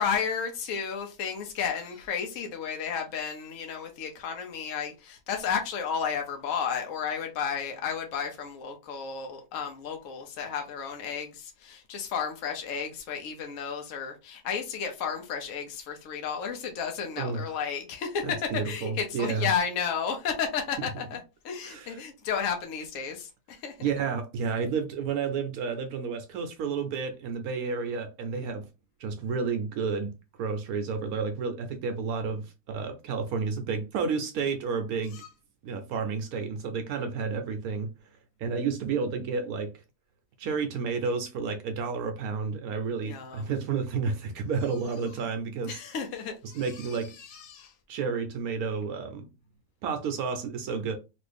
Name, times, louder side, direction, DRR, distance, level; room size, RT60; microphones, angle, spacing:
voice 1, 0.0-18.4 18.6-21.2 21.4-23.8 35.1-35.3 43.1-43.5 45.7-47.7, left 7 dB, 65° left, 1.0 m, -33 dB
voice 2, 17.2-17.5 18.2-19.5 20.8-20.9 21.6-22.0 23.8-28.7 29.0-35.2 35.6-37.9 38.4-39.7 40.4-45.8 46.5-47.1 47.9-49.3 49.8-51.0, right 5 dB, 75° right, 1.0 m, -31 dB
3.0 x 2.5 x 3.3 m
omnidirectional pair, 1.6 m